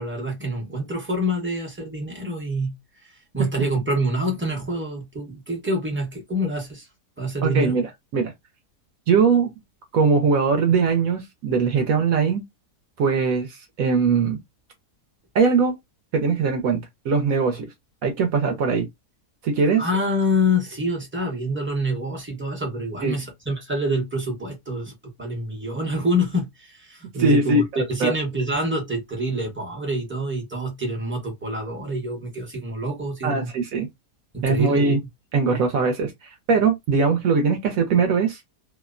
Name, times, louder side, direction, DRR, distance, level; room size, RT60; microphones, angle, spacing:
voice 1, 0.0-2.7 3.3-6.9 7.2-7.7 19.8-33.5 34.3-35.0, equal, 15° right, 0.4 m, -26 dB
voice 2, 7.4-8.3 9.1-9.5 9.9-12.4 13.0-14.4 15.3-15.8 16.1-17.7 18.0-18.9 19.4-19.8 23.0-23.2 27.2-27.6 28.0-28.1 33.2-33.9 34.4-35.0 35.3-36.1 36.5-38.4, right 5 dB, 70° right, 1.0 m, -21 dB
2.8 x 2.1 x 2.3 m
omnidirectional pair, 1.7 m